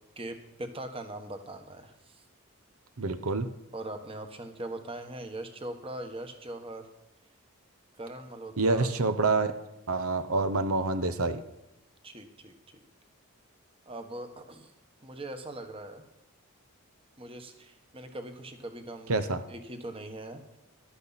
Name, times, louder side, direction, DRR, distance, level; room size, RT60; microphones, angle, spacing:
voice 1, 0.2-2.2 3.7-6.9 8.0-8.9 12.0-12.8 13.9-14.7 15.0-16.0 17.2-19.1 19.5-20.4, right 1 dB, 25° right, 6 dB, 1.3 m, -41 dB
voice 2, 3.0-3.5 8.6-9.5 9.9-11.4 19.1-19.4, right 3 dB, 75° right, 10 dB, 0.9 m, -27 dB
14.5 x 12.0 x 4.1 m, 0.97 s
head